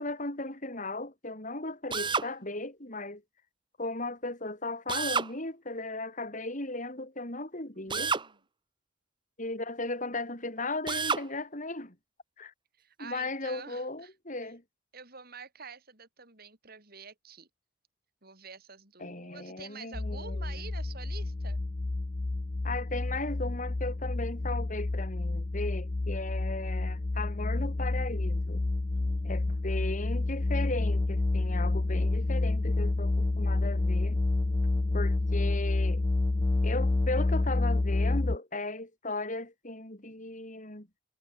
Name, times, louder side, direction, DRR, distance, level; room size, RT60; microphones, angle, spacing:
voice 1, 0.0-3.2 3.8-8.1 9.4-12.0 12.4-12.5 13.0-14.6 19.0-20.7 22.6-28.6 29.2-34.2 34.9-36.0 36.6-40.9, left 2 dB, 40° left, 6.0 m, -36 dB
Drill, 1.9-2.3 4.9-5.3 7.9-8.3 10.9-11.3, right 5 dB, 25° right, 1.2 m, -29 dB
voice 2, 7.7-8.4 12.8-14.1 14.4-14.5 14.9-17.5 18.2-21.6 28.9-30.0, right 5 dB, 50° right, 5.9 m, -48 dB
sound 1, 19.9-38.4, left 2 dB, 25° left, 0.4 m, -29 dB
head